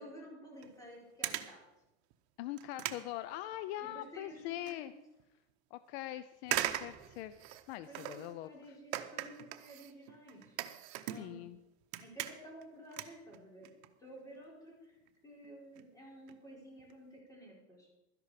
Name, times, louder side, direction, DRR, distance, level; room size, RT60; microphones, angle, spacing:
voice 1, 0.0-1.6 3.8-4.9 7.9-10.6 11.1-11.5 12.0-13.7 14.0-14.9 15.2-18.0, equal, 10° left, -3 dB, 4.5 m, -52 dB
sound 1, 0.6-0.8 1.2-1.6 2.1-2.2 2.6-3.9 4.3-4.8 5.2-5.3 6.4-8.4 8.9-11.6 11.8-12.6 12.9-13.9 14.2-14.4 15.1-15.2 15.4-15.5 15.8-15.9 16.1-16.4 16.8-16.9 17.2-17.3, right 14 dB, 70° right, 1.0 m, -40 dB
voice 2, 2.4-4.9 5.7-8.8 11.0-11.6, left 14 dB, 65° left, 13 dB, 0.6 m, -43 dB
Explosion, 6.5-8.1, right 3 dB, 15° right, 4.1 m, -63 dB
12.5 x 11.0 x 4.9 m, 0.95 s
supercardioid pair, 135°, 34 cm